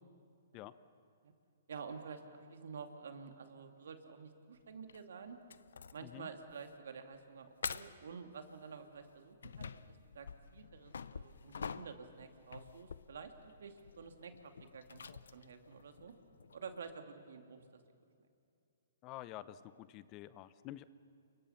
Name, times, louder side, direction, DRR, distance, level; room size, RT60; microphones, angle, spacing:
voice 1, 1.7-5.4 5.9-16.1 16.5-17.6, right 5 dB, 70° right, 6 dB, 2.5 m, -50 dB
sound 1, 4.9-5.0 5.5-6.1 6.5-6.7 7.1-7.2 7.6-8.1 8.9-17.0, left 6 dB, 80° left, 0.8 m, -48 dB
voice 2, 19.0-20.8, left 14 dB, 30° left, 15 dB, 0.8 m, -49 dB
29.0 x 24.0 x 5.9 m, 2.5 s
hypercardioid pair, 140°, 0 cm